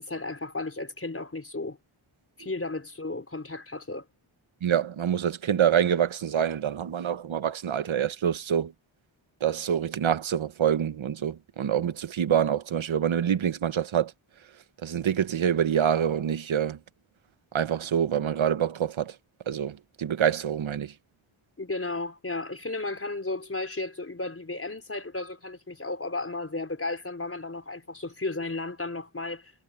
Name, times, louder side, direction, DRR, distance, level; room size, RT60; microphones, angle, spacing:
voice 1, 0.0-1.8 2.4-4.0 21.6-29.5, left 2 dB, 30° left, 4.9 m, -34 dB
voice 2, 4.6-8.7 9.4-14.1 14.8-16.8 17.5-19.1 19.5-20.9, right 9 dB, 70° right, 1.1 m, -26 dB
wide cardioid pair, 85°, 48 cm